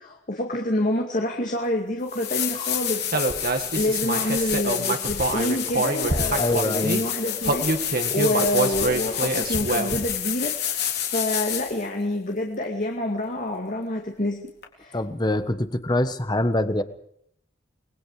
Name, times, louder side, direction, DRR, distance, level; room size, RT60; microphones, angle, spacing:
voice 1, 0.0-3.3 3.7-14.4 14.8-15.0, left 1 dB, 45° left, 1 dB, 2.3 m, -27 dB
sound 1, 1.6-1.7 2.1-11.8 14.6-14.7, left 10 dB, 60° left, 4.0 m, -29 dB
Human voice, 3.1-7.0 7.4-10.2, right 2 dB, 55° right, 2.2 m, -26 dB
voice 2, 6.4-7.0 14.9-16.8, left 1 dB, 25° left, 11 dB, 1.2 m, -24 dB
29.0 x 20.5 x 5.0 m, 0.69 s
head